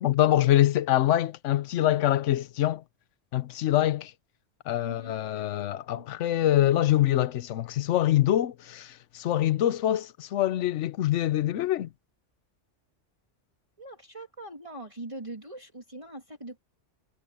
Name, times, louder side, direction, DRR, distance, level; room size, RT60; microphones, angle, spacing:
voice 1, 0.0-2.8 3.3-4.1 4.7-11.9, left 13 dB, 75° left, 1.0 m, -25 dB
voice 2, 4.8-5.4 5.9-6.1 13.8-16.6, right 2 dB, 25° right, 2.9 m, -42 dB
omnidirectional pair, 1.2 m